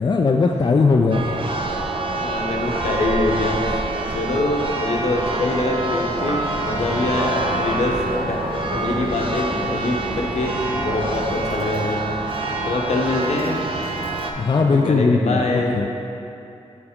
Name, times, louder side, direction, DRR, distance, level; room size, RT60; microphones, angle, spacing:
voice 1, 0.0-1.4 14.4-15.9, left 4 dB, 40° left, 2 dB, 0.4 m, -18 dB
Church bell, 1.1-14.3, right 2 dB, 45° right, 0.6 m, -26 dB
voice 2, 2.2-3.8 4.1-8.0 8.3-8.4 8.7-12.0 12.7-13.6 14.7-15.8, left 2 dB, 70° left, -1 dB, 0.8 m, -24 dB
sound 1, 6.1-11.6, right 1 dB, 90° right, 1.3 m, -32 dB
6.4 x 4.7 x 3.6 m, 2.7 s
cardioid pair, 55°, 12 cm